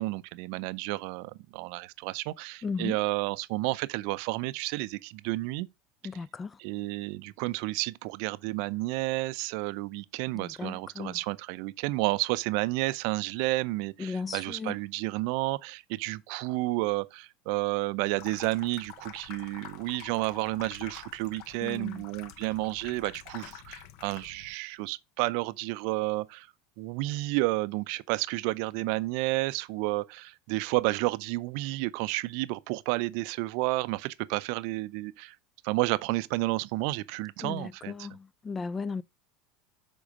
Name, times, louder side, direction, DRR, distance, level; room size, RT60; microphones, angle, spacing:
voice 1, 0.0-5.7 6.6-26.5 26.8-35.4 35.6-38.1, right 21 dB, 65° right, 0.5 m, -31 dB
voice 2, 2.6-3.0 6.0-6.5 10.3-11.1 14.0-14.7 21.6-22.0 37.4-39.0, left 4 dB, 25° left, 0.4 m, -36 dB
Water tap faucet / Sink (filling or washing), 18.1-24.5, left 10 dB, 60° left, 0.7 m, -48 dB
7.2 x 3.8 x 5.0 m
hypercardioid pair, 85°, 0 cm